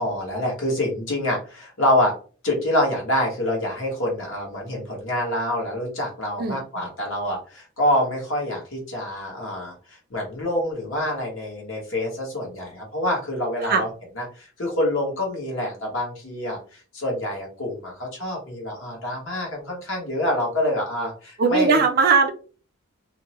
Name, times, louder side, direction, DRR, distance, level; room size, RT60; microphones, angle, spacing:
voice 1, 0.0-2.1 2.4-13.9 14.2-21.8, left 1 dB, 65° left, -1 dB, 1.1 m, -26 dB
voice 2, 6.4-6.9 13.7-13.8 21.4-22.3, right 4 dB, 45° right, 6 dB, 0.4 m, -19 dB
2.6 x 2.0 x 2.9 m, 0.39 s
head